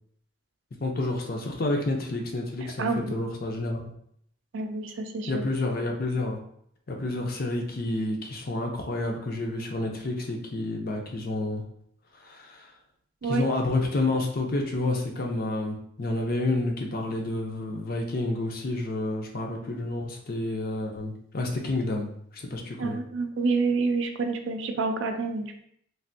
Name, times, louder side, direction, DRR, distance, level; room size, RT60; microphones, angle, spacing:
voice 1, 0.8-3.9 5.3-6.4 6.9-11.6 12.2-12.7 13.3-23.0, left 2 dB, 50° left, 1 dB, 0.5 m, -29 dB
voice 2, 2.8-3.2 4.5-5.4 13.2-13.4 22.8-25.6, right 4 dB, 70° right, 5 dB, 0.4 m, -28 dB
3.3 x 2.5 x 2.6 m, 0.68 s
head